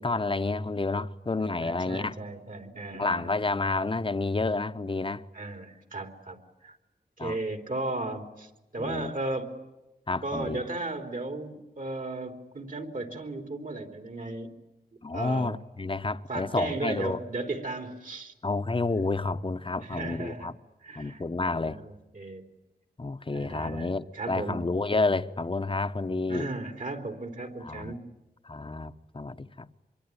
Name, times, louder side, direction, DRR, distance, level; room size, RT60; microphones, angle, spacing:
voice 1, 0.0-2.1 3.0-5.2 7.2-7.4 8.8-9.1 10.1-10.6 15.0-17.2 18.4-20.5 21.0-21.8 23.0-26.5 27.6-27.9 28.4-29.7, left 3 dB, 30° left, 1.0 m, -30 dB
voice 2, 1.4-3.6 5.3-6.4 6.6-6.8 7.2-9.6 10.2-14.5 15.1-15.6 16.3-18.3 19.8-20.5 20.8-22.4 23.3-24.6 26.3-28.1, right 2 dB, 55° right, 3.5 m, -36 dB
25.5 x 23.0 x 9.9 m
wide cardioid pair, 65°, 16 cm